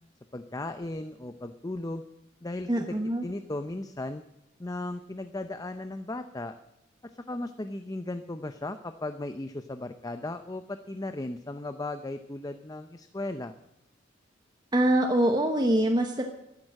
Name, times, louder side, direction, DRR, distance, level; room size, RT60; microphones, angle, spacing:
voice 1, 0.3-2.0 2.4-2.9 3.2-4.2 4.6-6.5 7.1-13.5, left 2 dB, 20° left, 9 dB, 0.6 m, -36 dB
voice 2, 2.7-3.3 14.7-16.3, right 1 dB, 20° right, 4 dB, 1.0 m, -24 dB
13.0 x 10.5 x 7.5 m, 0.83 s
head